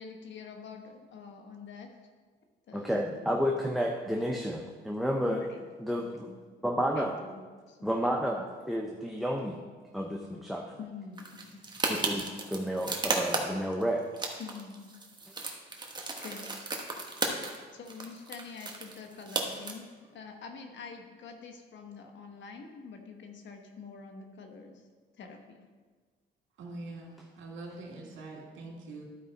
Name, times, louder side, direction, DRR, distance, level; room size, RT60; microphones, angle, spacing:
voice 1, 0.0-1.9 2.7-3.1 5.2-6.4 6.9-7.9 10.8-11.6 14.4-14.9 16.2-16.5 17.7-24.8 25.2-25.6, left 5 dB, 65° left, 4 dB, 1.2 m, -46 dB
voice 2, 2.7-5.4 5.8-6.3 6.6-7.1 7.8-9.6 9.9-10.6 11.9-14.1, equal, ahead, 0 dB, 0.7 m, -31 dB
sound 1, 11.2-13.8 14.1-17.6 17.9-19.7, right 3 dB, 20° right, 1.2 m, -34 dB
voice 3, 26.6-29.0, right 2 dB, 75° right, -1 dB, 2.2 m, -44 dB
12.0 x 4.7 x 4.0 m, 1.5 s
cardioid pair, 90°, 20 cm